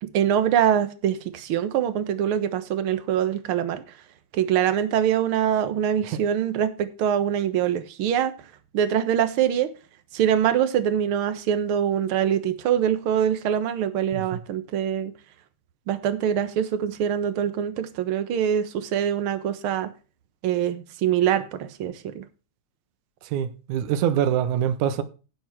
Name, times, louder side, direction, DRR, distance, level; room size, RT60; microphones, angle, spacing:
voice 1, 0.0-3.8 4.3-8.3 8.7-9.7 10.1-15.1 15.9-19.9 20.4-22.2, right 9 dB, 55° right, 1.6 m, -24 dB
voice 2, 23.2-25.0, right 9 dB, 80° right, 2.4 m, -25 dB
15.5 x 5.3 x 6.0 m
omnidirectional pair, 3.5 m